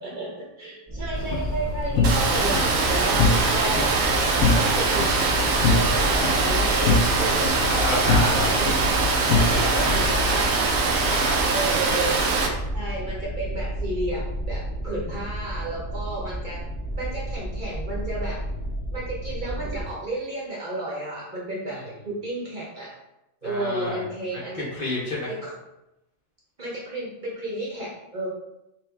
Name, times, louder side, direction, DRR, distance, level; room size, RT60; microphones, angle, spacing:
voice 1, 0.0-3.9 4.4-5.3 5.6-7.5 7.7-8.0 8.3-8.8 9.7-10.8 11.0-12.3 12.7-16.6 17.0-18.4 18.9-22.9 23.4-24.6 25.3-25.5 26.6-28.3, right 2 dB, 40° right, -5 dB, 1.0 m, -32 dB
sound 1, 0.9-19.8, right 1 dB, 15° right, 0.7 m, -32 dB
sound 2, 1.2-10.5, left 4 dB, 85° left, 1.1 m, -26 dB
Water, 2.0-12.5, right 4 dB, 90° right, 1.1 m, -23 dB
voice 2, 7.7-8.6 9.3-10.0 11.0-11.4 21.7-21.8 23.4-24.0 24.3-25.3, left 1 dB, 45° left, -5 dB, 0.9 m, -30 dB
3.3 x 3.3 x 3.4 m, 0.91 s
omnidirectional pair, 1.4 m